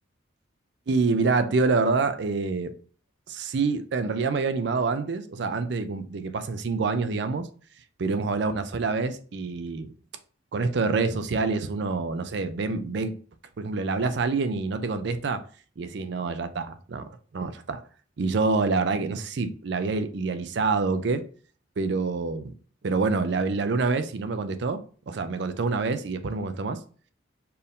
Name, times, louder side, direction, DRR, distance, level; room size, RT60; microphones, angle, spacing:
voice 1, 0.9-2.7 3.3-7.5 8.0-9.9 10.5-13.1 13.6-15.4 15.8-17.8 18.2-21.2 21.8-22.6 22.8-26.8, right 4 dB, 65° right, 0.4 m, -27 dB
4.4 x 2.6 x 3.5 m
head